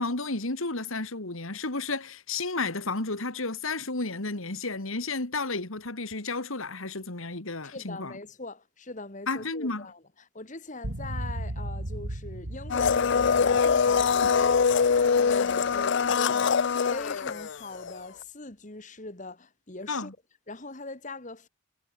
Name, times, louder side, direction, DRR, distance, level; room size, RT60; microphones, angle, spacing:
voice 1, 0.0-8.1 9.3-9.9 14.2-14.3 19.9-20.1, left 3 dB, 70° left, 2.3 m, -32 dB
voice 2, 7.7-20.1 20.5-21.5, left 2 dB, 35° left, 1.8 m, -42 dB
sound 1, 10.8-16.2, right 1 dB, 85° right, 2.4 m, -37 dB
Domestic sounds home sounds, 12.7-18.0 18.2-18.3, left 6 dB, 55° left, 0.4 m, -23 dB
head